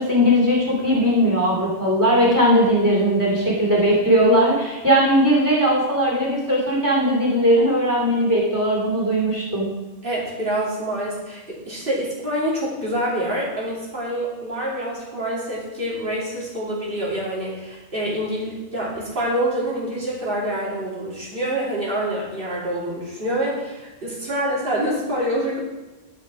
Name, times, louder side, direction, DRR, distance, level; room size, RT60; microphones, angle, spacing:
voice 1, 0.0-9.7, equal, 15° right, -3 dB, 2.8 m, -19 dB
voice 2, 10.0-25.6, right 1 dB, 50° right, -7 dB, 3.1 m, -26 dB
11.5 x 5.2 x 4.9 m, 1.1 s
omnidirectional pair, 1.2 m